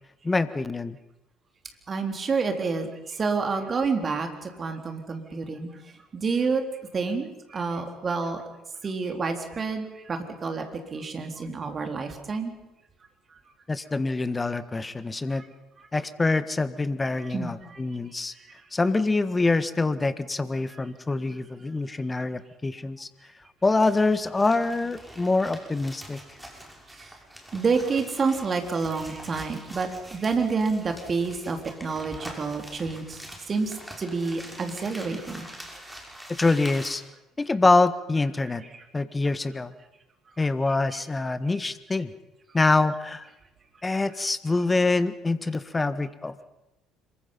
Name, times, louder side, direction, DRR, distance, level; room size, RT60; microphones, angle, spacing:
voice 1, 0.2-1.0 13.7-15.4 15.9-18.3 18.7-23.1 23.6-26.2 36.4-37.0 37.4-38.6 38.9-39.7 40.4-42.1 42.5-43.2 43.8-46.4, left 3 dB, 20° left, 13 dB, 1.5 m, -25 dB
voice 2, 1.9-5.7 6.1-6.6 6.9-8.4 8.8-10.7 10.9-12.5 17.3-17.8 27.5-33.2 33.5-35.5, right 4 dB, 35° right, 5 dB, 3.8 m, -28 dB
sound 1, 23.8-37.0, equal, 5° right, 6.1 m, -44 dB
26.0 x 23.5 x 5.7 m, 0.92 s
figure-of-eight pair, 55°, 0 cm